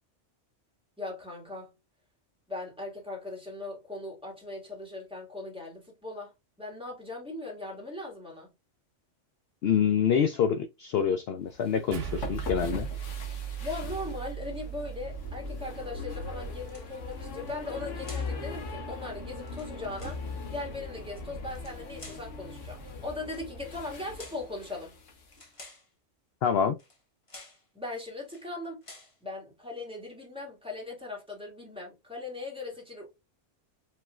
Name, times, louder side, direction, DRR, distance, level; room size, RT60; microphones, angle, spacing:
voice 1, 1.0-1.7 2.5-6.3 6.6-8.5 13.6-20.2 20.5-25.0 27.7-28.8 29.2-33.1, left 2 dB, 5° right, 2.2 m, -39 dB
voice 2, 9.6-12.9 26.4-26.8, left 7 dB, 65° left, 0.7 m, -26 dB
sound 1, 11.5-25.4, left 3 dB, 85° left, 1.4 m, -40 dB
sound 2, 11.9-16.5, right 9 dB, 75° right, 1.3 m, -38 dB
sound 3, 16.7-17.2 18.0-18.4 19.4-20.2 21.5-22.3 23.2-23.5 24.2-24.5 25.3-25.9 26.8-27.0 27.3-27.6 28.2-28.5 28.8-29.2, left 2 dB, 30° left, 1.1 m, -50 dB
5.0 x 3.7 x 2.4 m
omnidirectional pair, 1.3 m